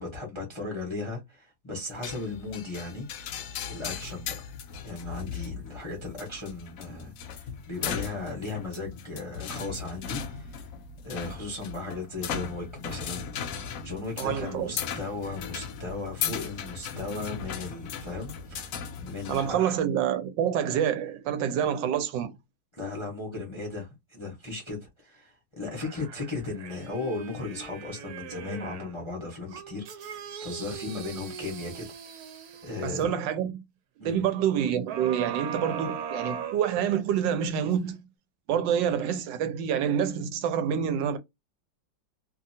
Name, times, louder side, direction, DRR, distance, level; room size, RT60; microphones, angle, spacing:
voice 1, 0.0-3.1 3.7-4.5 4.8-10.6 11.0-19.8 22.7-31.9 32.6-33.1 34.0-34.2, left 3 dB, 25° left, 0.6 m, -36 dB
sound 1, 2.0-19.5, left 7 dB, 80° left, 0.7 m, -37 dB
voice 2, 14.2-14.7 19.3-22.3 32.8-33.5 34.0-38.0 38.5-41.2, right 9 dB, 80° right, 1.3 m, -27 dB
sound 2, 25.8-29.0 29.5-33.1 34.9-37.2 37.7-37.8, right 7 dB, 65° right, 1.0 m, -39 dB
2.7 x 2.6 x 2.6 m
omnidirectional pair, 2.0 m